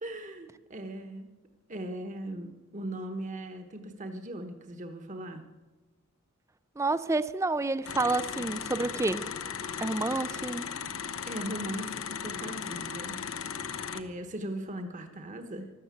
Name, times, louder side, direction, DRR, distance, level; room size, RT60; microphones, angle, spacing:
voice 1, 0.0-1.3 1.7-5.4 11.3-13.2 13.9-15.7, right 1 dB, 35° right, 1.1 m, -39 dB
voice 2, 6.8-9.3 9.8-10.7, right 2 dB, 15° right, 0.4 m, -29 dB
sound 1, 7.8-14.0, left 7 dB, 75° left, 0.9 m, -37 dB
13.5 x 12.5 x 8.3 m
head